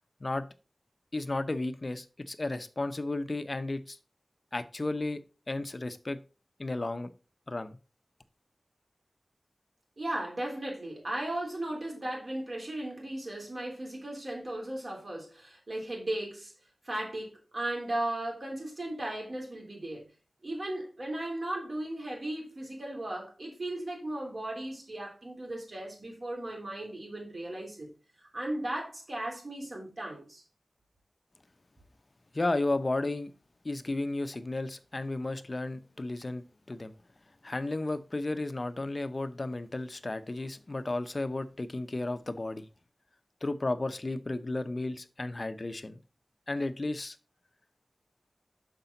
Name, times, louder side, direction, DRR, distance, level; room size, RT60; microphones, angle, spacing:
voice 1, 1.1-4.0 4.5-5.2 5.5-6.2 6.6-7.1 7.5-7.8 32.3-33.3 33.6-36.9 37.4-42.7 43.4-46.0 46.5-47.2, left 2 dB, 45° left, 0.7 m, -33 dB
voice 2, 10.0-16.5 16.8-20.0 20.4-27.9 28.2-30.4, right 1 dB, 55° right, 3.4 m, -36 dB
6.7 x 5.8 x 3.9 m
wide cardioid pair, 70°, 0 cm